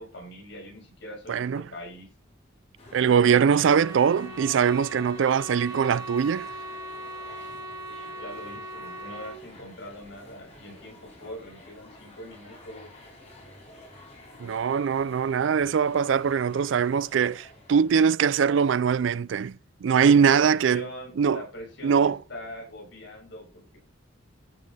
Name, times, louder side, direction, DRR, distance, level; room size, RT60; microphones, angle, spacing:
voice 1, 0.0-2.1 8.0-12.9 20.1-23.8, left 1 dB, 65° left, 5.8 m, -43 dB
voice 2, 1.3-1.7 2.9-6.5 14.4-20.8 21.2-21.4 21.8-22.2, right 7 dB, 70° right, 0.4 m, -22 dB
sound 1, 2.8-18.3, left 1 dB, 35° left, 4.8 m, -50 dB
Wind instrument woodwind instrument, 3.6-9.4, right 1 dB, 20° right, 2.1 m, -39 dB
14.5 x 5.7 x 3.5 m
head